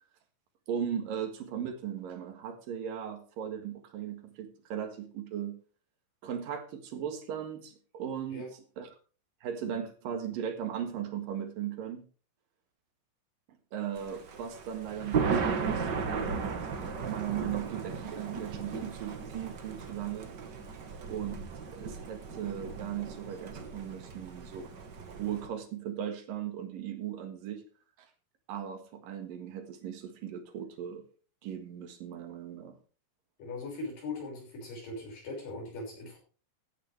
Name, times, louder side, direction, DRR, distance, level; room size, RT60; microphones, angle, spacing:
voice 1, 0.7-5.6 6.2-8.5 8.8-8.9 9.4-12.0 13.7-15.9 16.2-16.6 16.8-20.3 21.1-24.7 25.1-27.6 28.0-28.1 28.5-31.0 31.4-32.8, right 9 dB, 85° right, 7 dB, 3.4 m, -37 dB
Thunder, 14.0-25.5, right 5 dB, 50° right, 1.4 m, -36 dB
voice 2, 33.4-36.2, left 2 dB, 75° left, -1 dB, 7.6 m, -40 dB
15.0 x 10.0 x 3.4 m, 0.38 s
omnidirectional pair, 3.9 m